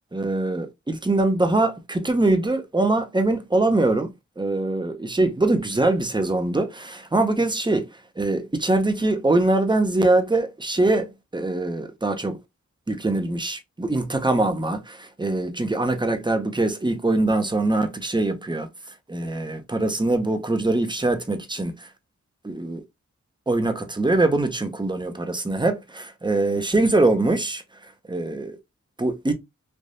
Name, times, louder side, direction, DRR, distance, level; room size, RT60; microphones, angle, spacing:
voice 1, 0.1-4.1 4.4-7.9 8.2-12.4 12.9-18.7 19.1-21.9 22.4-22.8 23.5-27.6 28.1-28.6 29.0-29.3, right 2 dB, 15° right, 0.7 m, -23 dB
3.4 x 2.6 x 2.6 m
cardioid pair, 45°, 30 cm